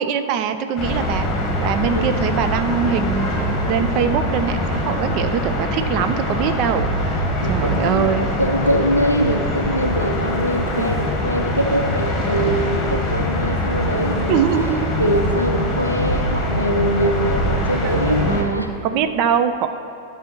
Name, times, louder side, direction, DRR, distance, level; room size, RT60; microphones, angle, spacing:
voice 1, 0.0-7.2 7.4-8.3 10.8-10.9 14.3-15.0 17.8-19.7, right 7 dB, 40° right, 9 dB, 0.4 m, -23 dB
sound 1, 0.8-18.4, left 1 dB, 20° left, 1.4 m, -23 dB
voice 2, 7.4-14.4 15.0-19.0, equal, 90° left, 3 dB, 0.4 m, -23 dB
13.0 x 6.1 x 3.0 m, 2.6 s
figure-of-eight pair, 90°, 0 cm